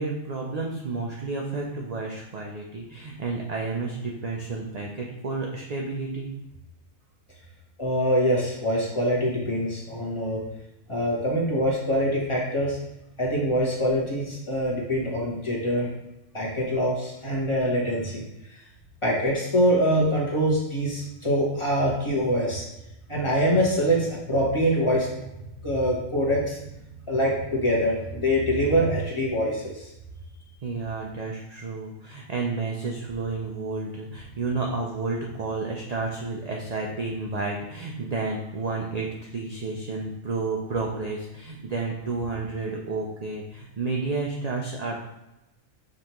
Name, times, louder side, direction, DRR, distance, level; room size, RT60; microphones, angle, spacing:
voice 1, 0.0-6.3 30.6-45.0, right 3 dB, 60° right, -1 dB, 0.4 m, -31 dB
voice 2, 7.8-10.4 10.9-12.8 13.2-15.9 16.3-18.2 19.0-22.6 23.1-25.3 25.6-26.6 27.1-29.9, equal, 25° left, -4 dB, 1.0 m, -24 dB
5.2 x 3.4 x 3.0 m, 0.92 s
omnidirectional pair, 1.4 m